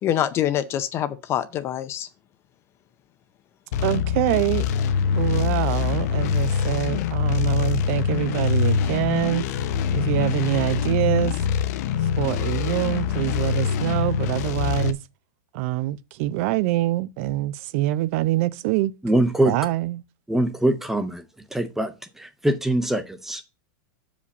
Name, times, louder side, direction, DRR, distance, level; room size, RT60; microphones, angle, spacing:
voice 1, 0.0-2.1, left 11 dB, 25° left, 0.6 m, -25 dB
sound 1, 3.7-14.9, left 7 dB, 55° left, 0.8 m, -24 dB
voice 2, 3.8-4.7 5.1-9.4 9.9-11.4 12.0-15.0 15.5-18.9 19.5-20.0, right 16 dB, 45° right, 0.5 m, -25 dB
voice 3, 19.0-19.5 20.3-21.2 21.5-23.4, right 1 dB, 5° right, 0.8 m, -23 dB
6.8 x 5.1 x 7.0 m
supercardioid pair, 155°, 10 cm